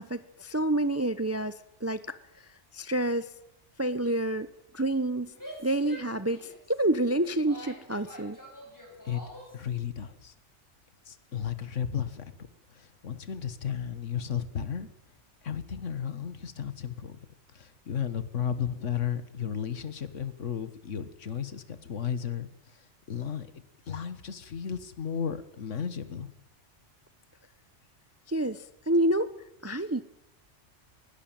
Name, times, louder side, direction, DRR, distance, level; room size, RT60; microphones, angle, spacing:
voice 1, 0.0-2.5 2.7-3.3 3.8-4.5 4.7-5.3 5.6-8.4 28.3-29.3 29.6-30.0, right 1 dB, 15° right, 13 dB, 0.8 m, -28 dB
Female speech woman speaking / Yell, 5.3-9.6, equal, 15° left, 7.5 m, -47 dB
voice 2, 9.5-10.3 11.1-12.3 12.7-14.9 15.4-17.2 17.5-26.3, left 8 dB, 75° left, 12 dB, 1.8 m, -34 dB
20.5 x 17.5 x 9.0 m, 0.82 s
omnidirectional pair, 1.3 m